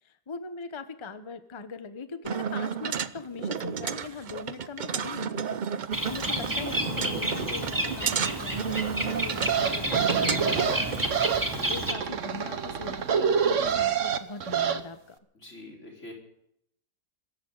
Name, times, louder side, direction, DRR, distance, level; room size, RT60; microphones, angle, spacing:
voice 1, 0.0-15.2, left 4 dB, 20° left, 10 dB, 0.9 m, -41 dB
sound 1, 2.2-11.0, right 7 dB, 70° right, 0.4 m, -32 dB
Bird, 5.9-11.9, right 1 dB, 10° right, 2.2 m, -31 dB
sound 2, 9.4-14.8, right 7 dB, 55° right, 1.3 m, -27 dB
voice 2, 15.3-16.1, left 1 dB, 45° left, 1 dB, 5.1 m, -45 dB
26.0 x 14.0 x 4.0 m, 0.73 s
omnidirectional pair, 1.7 m